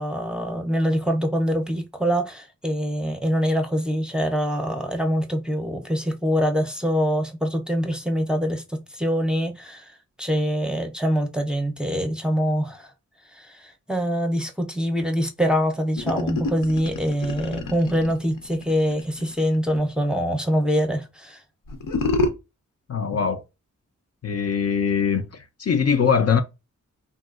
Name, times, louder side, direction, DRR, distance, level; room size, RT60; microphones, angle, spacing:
voice 1, 0.0-9.9 10.2-12.9 13.3-21.4, equal, 5° right, 0.5 m, -24 dB
sound 1, 16.0-19.8 21.7-22.3, left 3 dB, 85° left, 0.7 m, -27 dB
voice 2, 22.9-23.4 24.2-26.4, left 6 dB, 50° left, 0.4 m, -22 dB
3.6 x 2.3 x 2.3 m
wide cardioid pair, 90°, 32 cm